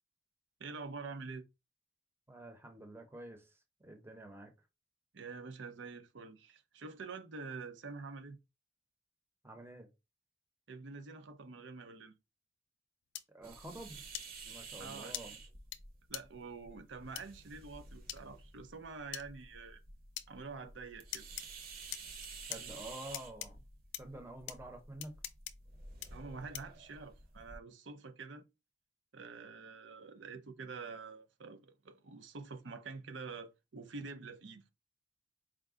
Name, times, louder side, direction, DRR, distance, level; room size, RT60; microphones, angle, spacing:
voice 1, 0.6-1.4 5.1-8.4 10.7-12.1 14.8-15.1 16.1-19.8 20.3-21.3 26.1-28.4 29.1-34.7, right 4 dB, 85° right, 0.6 m, -47 dB
voice 2, 2.3-4.5 9.4-9.9 13.3-14.1 14.5-15.4 22.5-23.6 24.0-25.2, right 1 dB, 15° right, 0.7 m, -49 dB
sound 1, 13.2-13.3 14.1-14.3 15.1-15.2 15.7-15.8 16.1-16.2 17.2-17.3 18.1-18.2 19.1-19.3 20.2-20.3 21.1-21.5 21.9-22.6 23.1-23.5 23.9-24.0 24.5-24.6 25.0-25.5 26.0-26.1 26.5-26.8, left 13 dB, 80° left, 0.4 m, -41 dB
sound 2, 13.4-27.6, right 4 dB, 50° right, 0.9 m, -52 dB
4.8 x 2.2 x 3.6 m
head